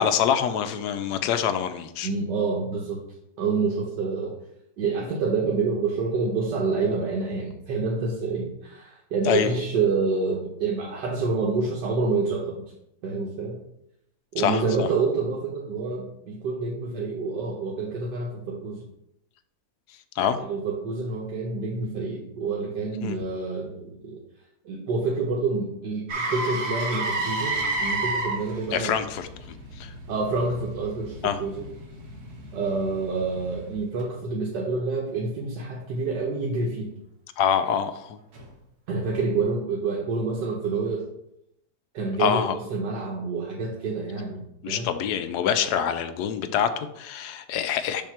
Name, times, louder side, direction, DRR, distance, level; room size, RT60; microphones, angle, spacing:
voice 1, 0.0-2.1 9.3-9.5 14.4-14.9 20.2-20.4 23.0-23.2 28.7-29.3 29.8-29.9 31.2-31.4 37.4-38.2 42.2-42.5 44.6-48.0, left 8 dB, 75° left, 10 dB, 1.1 m, -25 dB
voice 2, 2.0-3.0 3.4-4.3 4.8-12.6 13.0-13.6 14.3-18.8 20.4-24.2 24.6-28.9 30.1-31.7 32.5-36.9 38.9-41.1 41.9-44.9, right 4 dB, 80° right, -2 dB, 1.5 m, -28 dB
Motor vehicle (road), 26.1-34.0 38.3-38.5, right 2 dB, 65° right, 1.6 m, -32 dB
7.1 x 2.8 x 5.7 m, 0.80 s
omnidirectional pair, 1.8 m